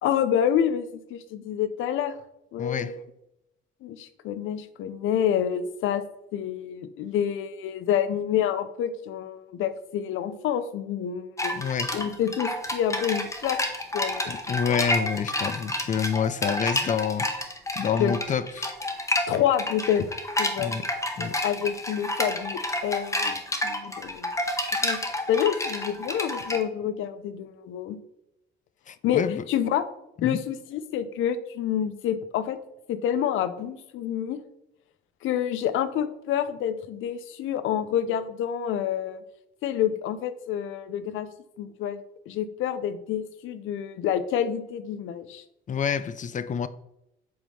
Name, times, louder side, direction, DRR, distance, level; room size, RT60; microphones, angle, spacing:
voice 1, 0.0-2.2 2.5-3.0 3.8-6.0 6.3-11.6 11.9-13.6 13.9-14.8 18.0-18.1 19.3-20.1 20.4-20.7 21.2-24.3 24.8-25.0 25.3-28.0 29.0-29.2 29.5-29.8 30.2-32.6 32.9-34.4 35.2-39.2 39.6-41.3 41.6-42.0 42.3-45.4, left 9 dB, 85° left, 0.6 m, -28 dB
voice 2, 2.6-3.0 11.5-12.0 14.3-17.4 17.8-18.7 20.6-20.8 21.2-21.4 28.9-29.4 30.2-30.4 45.7-46.7, left 7 dB, 40° left, 0.5 m, -28 dB
sound 1, 11.4-26.6, left 1 dB, 15° left, 1.1 m, -30 dB
7.8 x 3.5 x 5.5 m
cardioid pair, 90°, 20 cm